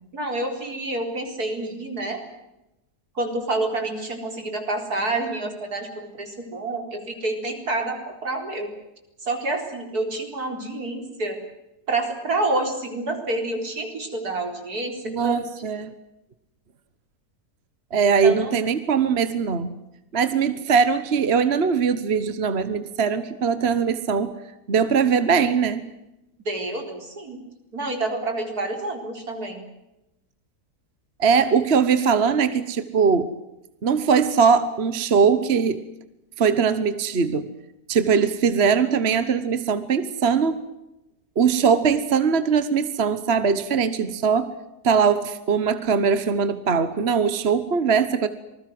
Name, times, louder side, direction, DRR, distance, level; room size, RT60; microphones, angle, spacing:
voice 1, 0.1-2.2 3.1-8.7 9.2-11.4 11.9-15.4 18.2-18.5 26.4-27.4 27.7-29.6, right 2 dB, 75° right, 5 dB, 4.7 m, -28 dB
voice 2, 15.0-15.9 17.9-19.7 20.1-24.3 24.7-25.9 31.2-33.3 33.8-35.8 36.4-37.5 37.9-40.6 41.4-44.5 44.8-48.3, right 6 dB, 45° right, 12 dB, 1.4 m, -21 dB
27.0 x 20.5 x 7.8 m, 0.92 s
omnidirectional pair, 1.6 m